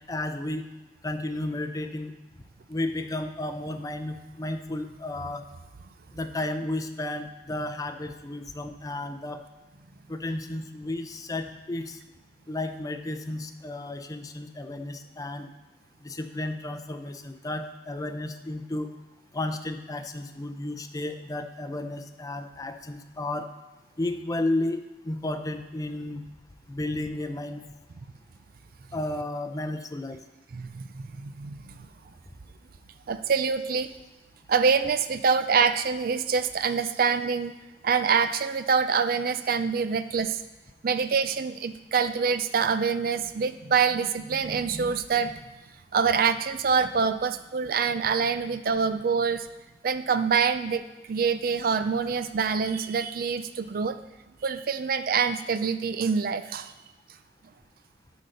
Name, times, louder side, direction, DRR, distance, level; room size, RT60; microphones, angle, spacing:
voice 1, 0.1-0.7 1.0-2.1 2.7-5.4 6.1-9.4 10.1-12.0 12.5-15.5 16.0-18.9 19.3-23.5 24.0-26.2 26.7-27.6 28.9-30.2, left 2 dB, 20° left, 7 dB, 0.5 m, -33 dB
voice 2, 30.5-31.8 33.1-33.9 34.5-37.6 37.8-40.4 40.8-45.3 45.9-49.5 49.8-50.8 51.1-54.0 54.4-56.7, right 6 dB, 55° right, 11 dB, 0.4 m, -25 dB
10.5 x 3.9 x 6.5 m, 1.1 s
head